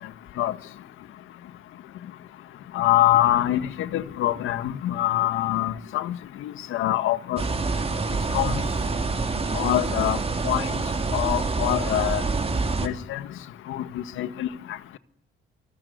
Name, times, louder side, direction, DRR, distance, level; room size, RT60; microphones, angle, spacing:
voice 1, 2.7-7.4 8.3-8.6 9.5-10.2 10.4-10.7 11.1-12.2 12.8-13.2 13.7-14.5, left 14 dB, 85° left, 1.7 m, -24 dB
sound 1, 7.4-12.9, right 3 dB, 30° right, 3.8 m, -26 dB
28.5 x 20.0 x 9.5 m
cardioid pair, 90°, 20 cm